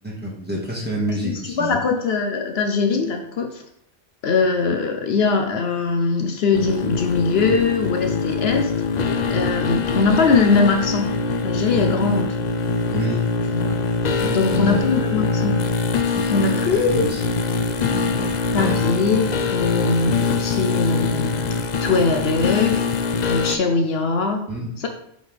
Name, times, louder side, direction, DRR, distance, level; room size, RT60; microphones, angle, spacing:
voice 1, 0.0-1.8 12.9-13.3 14.2-14.9 16.1-16.3 16.7-17.2 17.9-18.8 24.5-24.7, right 1 dB, 10° right, -5 dB, 1.7 m, -28 dB
voice 2, 1.2-3.6 4.2-11.1 11.4-12.4 13.5-13.8 14.3-15.6 16.3-17.0 18.5-21.4 21.8-22.8 23.3-24.4 24.8-24.9, left 4 dB, 70° left, 4 dB, 0.9 m, -21 dB
sound 1, 6.5-23.6, left 4 dB, 50° left, 0.6 m, -23 dB
8.0 x 4.0 x 3.4 m, 0.74 s
omnidirectional pair, 1.1 m